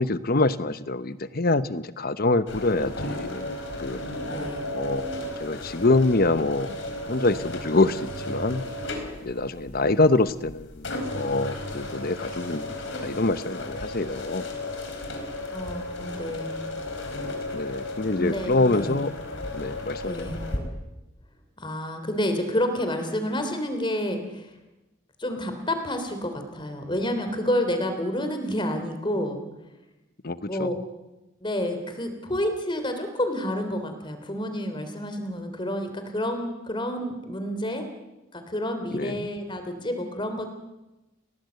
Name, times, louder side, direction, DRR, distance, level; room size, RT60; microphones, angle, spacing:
voice 1, 0.0-4.0 4.7-5.1 5.4-6.7 7.0-8.6 9.2-12.7 13.0-14.4 17.5-19.1 19.5-20.4 30.2-30.7 38.9-39.3, left 2 dB, 45° left, 13 dB, 0.9 m, -25 dB
sound 1, 2.5-20.6, left 1 dB, 60° left, 4.3 m, -34 dB
voice 2, 4.3-4.7 15.5-16.6 18.2-19.0 20.0-20.5 21.6-24.5 25.2-29.4 30.4-30.7 31.4-37.9 38.3-40.5, left 1 dB, 25° left, 7 dB, 3.2 m, -29 dB
30.0 x 18.5 x 8.2 m, 1.0 s
head